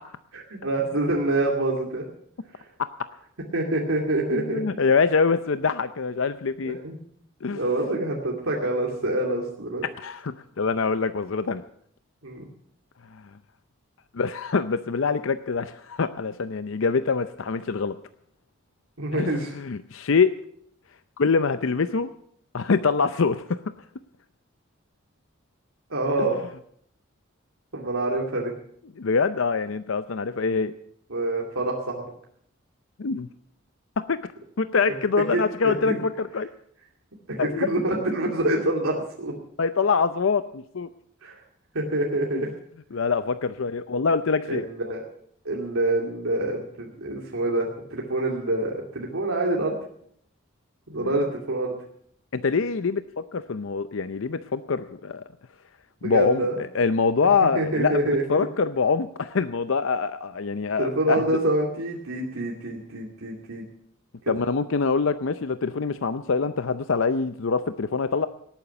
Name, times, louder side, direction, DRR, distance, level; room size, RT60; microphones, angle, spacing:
voice 1, 0.6-2.1 2.5-2.6 3.5-4.6 6.6-7.0 7.5-9.8 12.2-12.4 19.0-19.5 25.9-26.4 27.7-28.5 31.1-32.1 35.3-36.0 37.3-39.3 41.2-41.4 41.7-42.5 44.5-45.0 45.4-49.7 50.9-51.7 56.0-56.6 57.6-58.5 60.8-63.6, right 2 dB, 85° right, -2 dB, 2.5 m, -26 dB
voice 2, 4.3-6.8 7.4-7.6 9.8-11.6 13.1-13.2 14.1-18.0 19.1-20.3 21.2-22.1 22.5-23.6 26.2-26.3 29.0-30.7 33.0-33.3 34.0-34.2 34.6-36.5 37.4-37.7 39.6-40.9 42.3-42.4 42.9-44.7 51.0-51.1 52.3-55.2 56.0-61.2 64.3-68.3, left 5 dB, 70° left, 12 dB, 0.6 m, -24 dB
18.5 x 9.1 x 6.8 m, 0.66 s
head